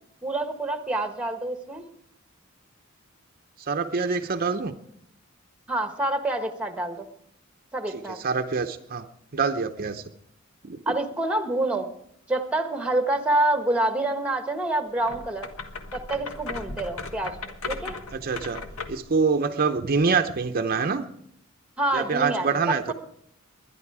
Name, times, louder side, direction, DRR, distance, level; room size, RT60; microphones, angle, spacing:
voice 1, 0.2-1.8 5.7-7.1 7.7-8.2 10.9-11.9 12.3-15.5 15.9-17.4 17.7-18.0 21.8-22.9, right 2 dB, 5° right, 7 dB, 1.2 m, -27 dB
voice 2, 3.6-4.8 8.2-9.1 9.3-10.1 10.6-10.8 18.1-18.6 18.9-21.1 21.9-22.9, right 5 dB, 45° right, 6 dB, 0.7 m, -25 dB
sound 1, 15.0-19.1, left 4 dB, 80° left, 1.4 m, -37 dB
21.0 x 11.0 x 4.8 m, 0.73 s
head